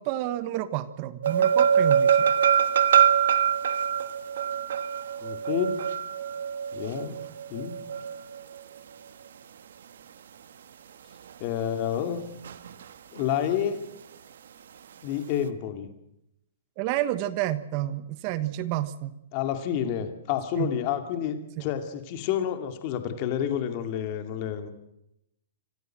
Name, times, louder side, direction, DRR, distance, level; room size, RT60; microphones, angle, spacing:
voice 1, 0.0-2.3 16.8-19.1 20.6-20.7 21.6-21.7, right 14 dB, 30° right, 14 dB, 1.2 m, -30 dB
sound 1, 1.2-8.6 12.4-12.8 13.2-13.3, right 8 dB, 75° right, 1.4 m, -24 dB
voice 2, 5.2-5.8 6.7-7.2 7.5-7.8 11.4-12.2 13.1-13.8 15.0-15.9 19.3-24.7, left 9 dB, 35° left, 7 dB, 2.4 m, -29 dB
26.5 x 15.0 x 7.5 m, 0.81 s
hypercardioid pair, 165°, 0 cm